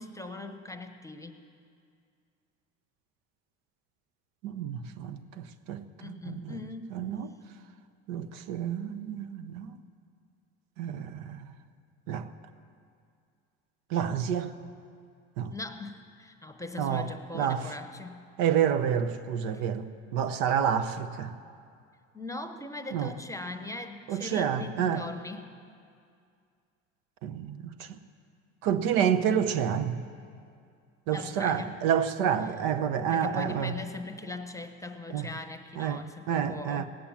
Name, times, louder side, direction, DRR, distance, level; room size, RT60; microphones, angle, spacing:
voice 1, 0.0-1.4 6.0-7.0 15.5-18.2 19.5-19.6 22.1-25.5 31.1-31.8 33.1-36.9, left 2 dB, 10° left, 1.0 m, -40 dB
voice 2, 4.4-6.6 6.9-7.3 8.1-9.7 10.8-11.4 12.1-12.2 13.9-14.5 15.4-15.5 16.8-17.1 17.3-17.6 18.4-19.8 20.1-21.3 22.9-23.1 24.1-25.0 27.2-27.7 28.6-30.0 31.1-33.8 35.1-35.3 35.8-36.9, right 8 dB, 75° right, 0.9 m, -29 dB
18.0 x 8.7 x 7.3 m
supercardioid pair, 85°, 35 cm